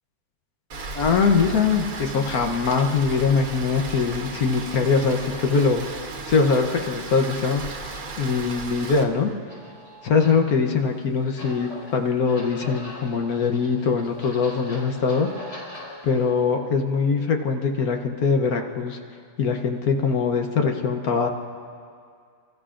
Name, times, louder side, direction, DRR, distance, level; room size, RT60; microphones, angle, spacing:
Rain, 0.7-9.0, right 3 dB, 60° right, 1.5 m, -35 dB
voice 1, 0.9-5.9 6.3-7.6 8.2-9.3 10.0-15.3 16.0-19.0 19.4-21.3, left 5 dB, 65° left, 3 dB, 1.3 m, -22 dB
sound 1, 9.5-16.3, left 1 dB, 85° left, 5.8 m, -42 dB
29.5 x 15.0 x 2.5 m, 2.2 s
omnidirectional pair, 1.8 m